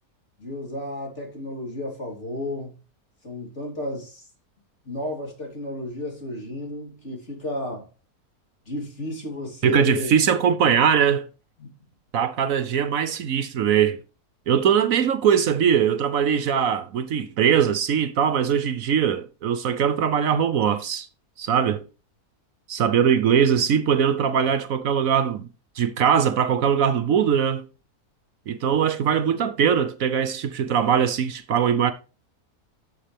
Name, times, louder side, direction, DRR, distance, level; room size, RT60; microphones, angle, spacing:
voice 1, 0.4-2.7 3.2-4.3 4.8-7.9 8.7-10.1 11.6-11.7, left 1 dB, 45° left, 3.8 m, -32 dB
voice 2, 9.6-11.3 12.1-14.0 14.5-21.1 21.4-21.8 22.7-25.5 25.8-27.6 28.5-31.9, right 8 dB, 70° right, 1.1 m, -21 dB
11.5 x 6.6 x 3.4 m
omnidirectional pair, 1.6 m